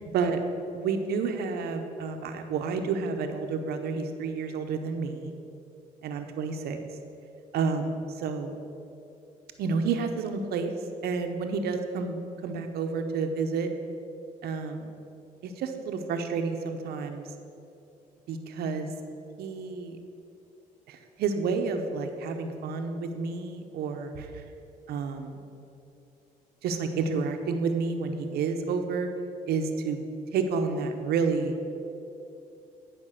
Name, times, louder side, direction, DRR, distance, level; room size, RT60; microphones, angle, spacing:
voice 1, 0.7-5.3 6.0-6.8 7.5-8.5 9.6-10.7 11.0-13.7 14.4-14.9 15.4-17.3 18.3-18.9 19.4-20.0 20.9-24.4 24.9-25.4 26.6-29.1 29.5-30.0 30.3-31.5, right 5 dB, 75° right, 6 dB, 0.9 m, -30 dB
10.0 x 5.2 x 6.6 m, 2.8 s
supercardioid pair, 65°, 16 cm